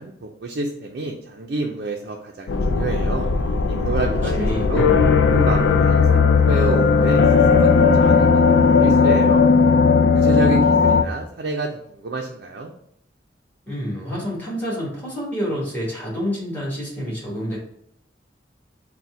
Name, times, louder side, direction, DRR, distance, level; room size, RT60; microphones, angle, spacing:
voice 1, 0.0-3.3 3.7-4.9 5.3-6.0 6.4-7.2 7.5-9.4 10.1-12.7, right 2 dB, 60° right, 0 dB, 0.4 m, -28 dB
sound 1, 2.5-11.0, left 5 dB, 80° left, 0.4 m, -16 dB
voice 2, 4.0-4.7 13.7-17.6, equal, 10° left, -6 dB, 1.5 m, -28 dB
4.1 x 2.2 x 4.5 m, 0.71 s
head